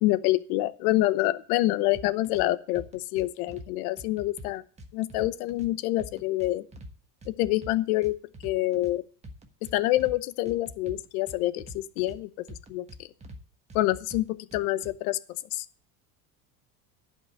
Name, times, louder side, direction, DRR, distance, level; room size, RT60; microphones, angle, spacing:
voice 1, 0.0-4.6 4.9-6.6 7.4-8.1 8.4-9.0 9.7-12.9 13.7-15.2 15.5-15.6, left 17 dB, 75° left, 15 dB, 0.9 m, -26 dB
sound 1, 1.9-2.5 2.8-3.7 4.0-5.7 6.0-6.9 7.2-8.9 9.2-10.2 10.5-12.2 12.5-13.4 13.7-14.9, equal, 15° right, 1.3 m, -44 dB
11.5 x 5.3 x 7.7 m, 0.41 s
cardioid pair, 145°, 44 cm